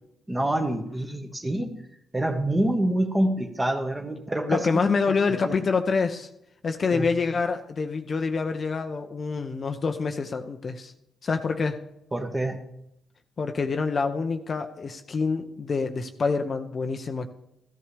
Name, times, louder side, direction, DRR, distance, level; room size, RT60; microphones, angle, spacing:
voice 1, 0.3-1.8 2.1-4.7 5.1-5.5 6.9-7.1 12.1-12.6, right 1 dB, 15° right, 5 dB, 1.5 m, -26 dB
voice 2, 4.5-6.3 6.6-10.9 11.2-11.8 13.4-17.3, left 4 dB, 40° left, 7 dB, 0.8 m, -26 dB
14.0 x 13.5 x 3.4 m, 0.81 s
cardioid pair, 90°, 0 cm